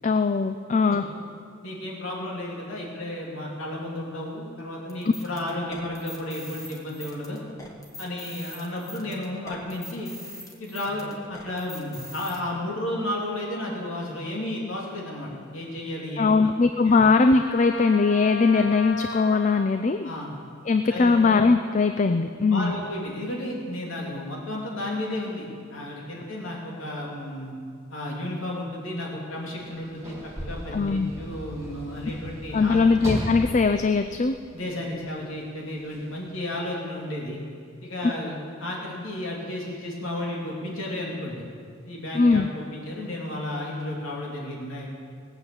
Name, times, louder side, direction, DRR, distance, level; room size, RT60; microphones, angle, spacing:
voice 1, 0.0-1.0 16.2-20.1 20.7-22.7 30.7-31.1 32.5-34.4 42.1-42.5, left 4 dB, 35° left, 8 dB, 0.4 m, -20 dB
voice 2, 1.6-7.4 8.0-10.1 10.6-17.0 18.6-18.7 20.0-20.3 20.9-21.2 22.5-27.5 27.9-32.8 34.5-37.4 37.8-41.4 41.8-44.9, left 1 dB, 75° left, -3 dB, 3.0 m, -33 dB
sound 1, 4.9-12.4, left 1 dB, 15° left, 1.3 m, -43 dB
Trumpet, 17.3-19.8, left 3 dB, 55° left, 1.5 m, -35 dB
Sliding door / Slam, 29.6-35.0 35.9-36.0, equal, 15° right, 2.0 m, -36 dB
19.0 x 8.0 x 7.1 m, 2.1 s
head